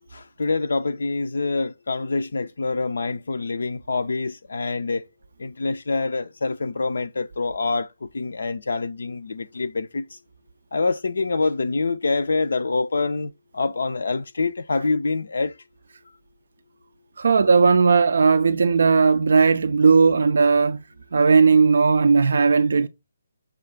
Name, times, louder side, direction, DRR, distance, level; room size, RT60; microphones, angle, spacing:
voice 1, 0.1-5.0 5.4-7.9 8.1-10.2 10.7-15.5, left 3 dB, 60° left, 0.3 m, -26 dB
voice 2, 17.2-20.8 21.1-22.9, right 5 dB, 60° right, 0.4 m, -17 dB
6.4 x 2.3 x 3.6 m
figure-of-eight pair, 140°, 0 cm